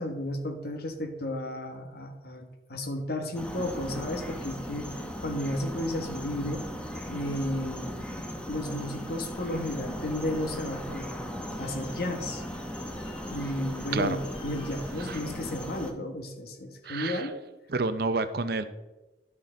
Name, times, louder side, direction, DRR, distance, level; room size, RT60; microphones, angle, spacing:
voice 1, 0.0-6.6 7.1-8.1 8.5-11.1 11.6-12.4 13.3-17.4, left 1 dB, 55° left, 5 dB, 1.3 m, -33 dB
sound 1, 3.3-15.9, equal, 5° left, 0.8 m, -38 dB
sound 2, 8.7-15.9, equal, 30° left, 2.0 m, -49 dB
voice 2, 16.8-17.3 17.7-18.6, right 3 dB, 55° right, 11 dB, 0.6 m, -29 dB
11.5 x 6.4 x 3.8 m, 1.1 s
head